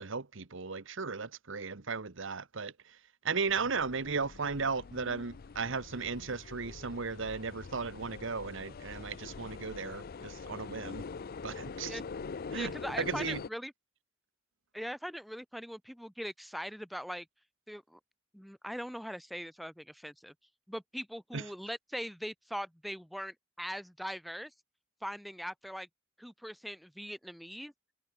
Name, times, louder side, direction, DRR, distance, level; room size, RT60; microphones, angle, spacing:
voice 1, 0.0-3.0 3.2-11.0 11.4-12.0 12.5-12.7 13.0-13.4 21.3-21.5, right 4 dB, 70° right, 1.2 m, -36 dB
sound 1, 3.5-13.5, left 4 dB, 50° left, 0.5 m, -44 dB
voice 2, 12.5-13.7 14.7-17.3 17.7-18.0 18.3-20.3 20.7-24.5 25.0-25.9 26.2-27.7, equal, ahead, 2.9 m, -41 dB
head